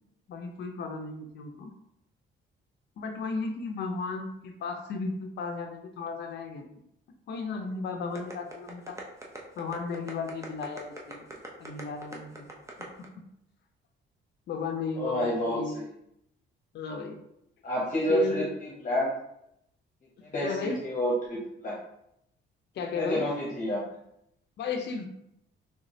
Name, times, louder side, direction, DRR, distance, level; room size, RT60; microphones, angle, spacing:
voice 1, 0.3-1.7 3.0-6.7 7.3-9.0 9.6-11.3 11.6-12.5 14.5-15.8 16.7-17.2 18.1-18.5 20.4-20.8 22.8-23.3 24.6-25.1, left 4 dB, 60° left, 4 dB, 0.5 m, -34 dB
sound 1, 8.1-13.1, right 2 dB, 15° right, 0.6 m, -42 dB
voice 2, 15.0-15.6 17.6-19.1 20.2-21.8 22.9-23.8, equal, 40° left, -5 dB, 0.9 m, -29 dB
3.4 x 3.0 x 2.7 m, 0.78 s
cardioid pair, 120°, 20 cm